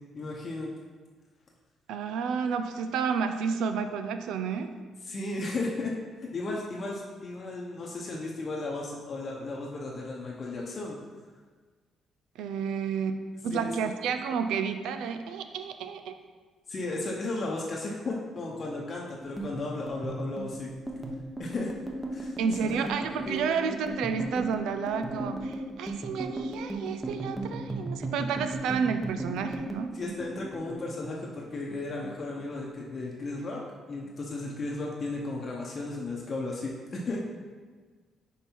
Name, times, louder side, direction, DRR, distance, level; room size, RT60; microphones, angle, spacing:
voice 1, 0.1-0.7 5.0-5.9 6.3-11.0 13.5-13.7 16.7-20.7 21.4-21.7 22.1-22.9 23.2-23.4 29.9-33.6 33.9-37.2, left 2 dB, 35° left, -2 dB, 0.8 m, -35 dB
voice 2, 1.9-4.7 12.4-13.2 13.4-16.2 22.4-30.0, right 6 dB, 90° right, 8 dB, 0.4 m, -31 dB
sound 1, 19.2-33.1 33.4-33.7 34.0-34.7, right 2 dB, 5° right, 0.8 m, -36 dB
5.3 x 4.6 x 4.5 m, 1.4 s
cardioid pair, 120°, 0 cm